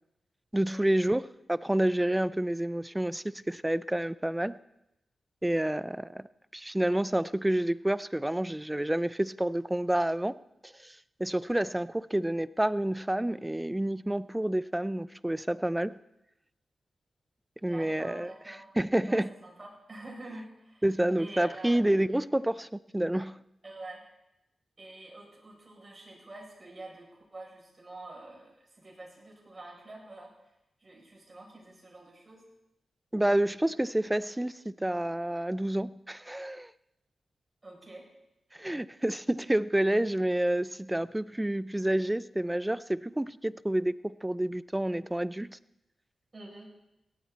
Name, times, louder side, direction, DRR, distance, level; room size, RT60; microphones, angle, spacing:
voice 1, 0.5-4.6 5.4-6.3 6.5-10.4 10.6-16.0 17.6-18.3 18.8-19.3 20.8-22.7 22.9-23.4 33.1-36.7 38.6-45.6, right 1 dB, 15° right, 17 dB, 0.6 m, -29 dB
voice 2, 17.7-18.7 19.1-20.9 21.2-21.8 23.6-24.0 24.8-30.3 30.8-32.4 37.6-38.1 38.7-38.9 46.3-46.7, right 2 dB, 40° right, -2 dB, 7.2 m, -47 dB
17.0 x 13.0 x 4.2 m, 0.89 s
supercardioid pair, 40°, 0 cm